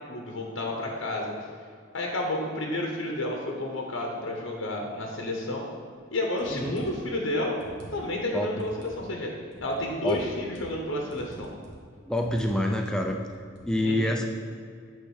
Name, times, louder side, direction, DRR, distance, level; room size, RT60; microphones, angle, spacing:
voice 1, 0.1-1.3 1.9-5.7 6.1-7.5 7.9-9.3 9.6-11.5 13.8-14.1, left 1 dB, 75° left, 0 dB, 1.0 m, -31 dB
sound 1, 6.4-7.1 7.5-8.2 8.6-9.0 9.5-10.8 11.1-11.9 12.2-12.6 12.9-13.7, right 1 dB, 55° right, 1.3 m, -47 dB
voice 2, 8.3-8.7 10.0-10.2 12.1-13.2 13.6-14.3, left 1 dB, 5° left, 2 dB, 0.5 m, -27 dB
8.7 x 3.4 x 6.4 m, 2.1 s
head